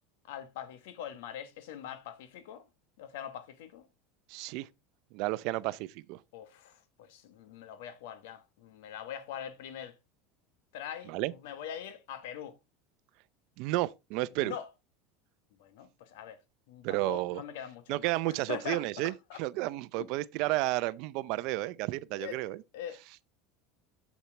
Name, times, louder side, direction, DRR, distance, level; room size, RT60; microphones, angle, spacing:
voice 1, 0.3-2.7 3.0-3.9 6.3-9.9 10.7-12.6 14.4-14.7 15.6-16.4 16.7-19.4 20.0-20.1 22.1-22.4 22.7-23.0, left 9 dB, 80° left, 1.3 m, -43 dB
voice 2, 4.3-4.7 5.1-6.2 11.1-11.3 13.6-14.5 16.8-17.4 17.9-19.1 19.4-22.6, right 18 dB, 60° right, 0.6 m, -32 dB
7.2 x 7.2 x 3.3 m
supercardioid pair, 140°, 0 cm